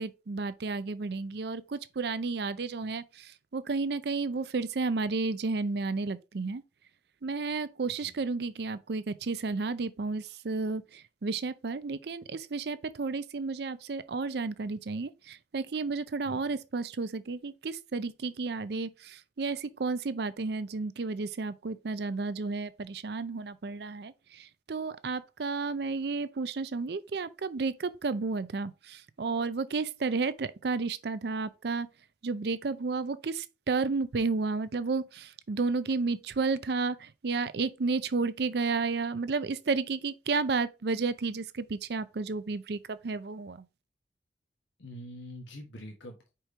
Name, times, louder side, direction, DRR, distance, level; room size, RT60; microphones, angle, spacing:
voice 1, 0.0-6.6 7.2-31.9 32.2-43.6, right 4 dB, 60° right, 0.5 m, -32 dB
voice 2, 44.8-46.3, equal, 80° left, 1.3 m, -45 dB
5.1 x 4.5 x 4.4 m
head